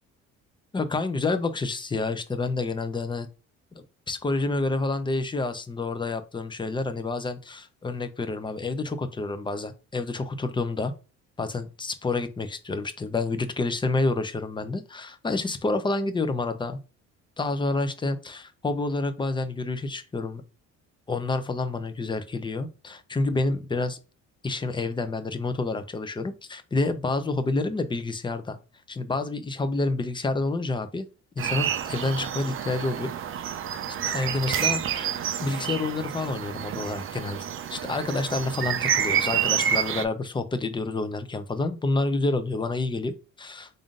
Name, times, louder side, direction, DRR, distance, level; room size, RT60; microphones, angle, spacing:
voice 1, 0.7-3.3 3.7-10.9 11.4-16.8 17.4-20.4 21.1-24.0 24.4-28.6 28.9-31.1 31.4-33.1 34.0-37.4 37.7-43.8, left 3 dB, 15° left, 9 dB, 0.6 m, -28 dB
sound 1, 31.4-40.0, right 9 dB, 45° right, 0.5 m, -28 dB
3.6 x 2.6 x 3.6 m, 0.32 s
cardioid pair, 95°, 30 cm